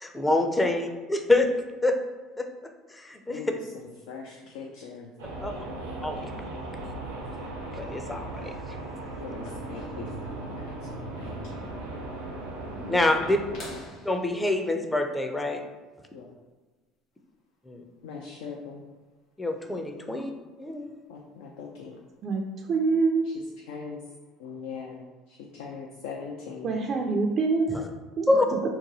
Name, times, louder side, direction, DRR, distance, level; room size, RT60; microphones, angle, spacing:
voice 1, 0.0-1.5 1.8-2.0 2.4-2.5 2.9-3.4 5.4-5.6 6.0-6.3 7.8-8.5 12.9-13.4 14.0-15.6 17.7-17.8 19.4-20.3 20.6-20.9 27.7-27.8 28.3-28.5, left 2 dB, 15° left, 4 dB, 0.5 m, -26 dB
voice 2, 4.1-5.1 5.5-5.7 9.2-10.6 11.2-11.7 16.1-16.2 18.0-18.8 20.1-20.2 21.1-21.9 23.7-24.0 24.4-25.0 25.6-26.7, left 5 dB, 80° left, -1 dB, 0.4 m, -40 dB
sound 1, 5.2-13.8, right 2 dB, 85° right, 0.7 m, -37 dB
sound 2, 13.6-16.0 18.0-18.1 20.3-20.4 22.1-22.4 23.2-23.3, left 2 dB, 50° left, 1.1 m, -47 dB
voice 3, 22.7-23.2 26.6-27.7 28.2-28.3, right 4 dB, 50° right, 1 dB, 0.4 m, -25 dB
2.9 x 2.2 x 3.9 m, 1.3 s
hypercardioid pair, 70°, 0 cm